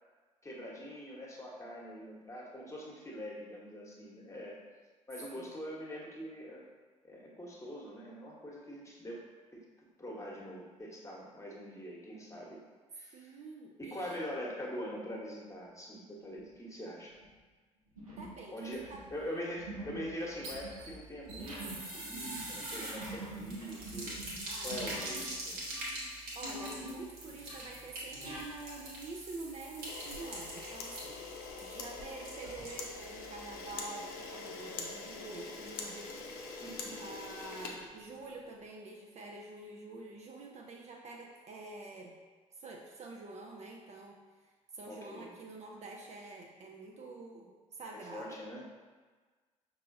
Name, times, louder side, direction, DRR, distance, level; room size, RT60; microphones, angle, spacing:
voice 1, 0.4-4.6 5.1-6.6 7.0-9.2 9.5-9.6 10.0-12.6 12.9-13.4 13.8-17.2 18.5-24.2 24.6-25.6 36.6-37.0 44.9-45.3 48.1-48.6, equal, 15° left, -3 dB, 1.1 m, -43 dB
voice 2, 13.1-14.3 18.2-19.0 24.5-25.0 26.3-36.2 36.9-42.1 42.5-48.4, right 3 dB, 40° right, 0 dB, 0.5 m, -47 dB
sound 1, 16.3-16.6 17.1-17.3 18.0-18.4 18.7-25.3 25.6-27.0 27.3-28.5, right 1 dB, 90° right, 0.8 m, -46 dB
sound 2, 20.2-33.2 33.5-33.6 33.8-33.9, right 1 dB, 60° right, 1.2 m, -44 dB
Camera, 29.8-38.5, left 4 dB, 65° left, 0.6 m, -44 dB
5.4 x 2.7 x 2.6 m, 1.4 s
figure-of-eight pair, 50°, 17 cm